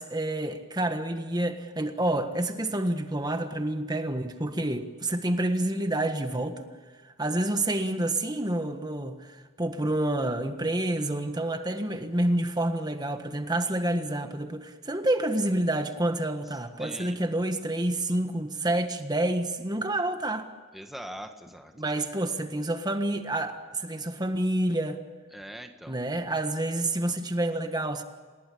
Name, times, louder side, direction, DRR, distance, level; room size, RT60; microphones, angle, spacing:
voice 1, 0.0-6.7 7.0-20.5 21.8-25.0 25.9-28.0, right 1 dB, 20° right, 1.5 m, -28 dB
voice 2, 16.8-17.2 20.7-22.0 25.3-26.0, equal, ahead, 1.6 m, -42 dB
28.5 x 18.5 x 8.6 m
head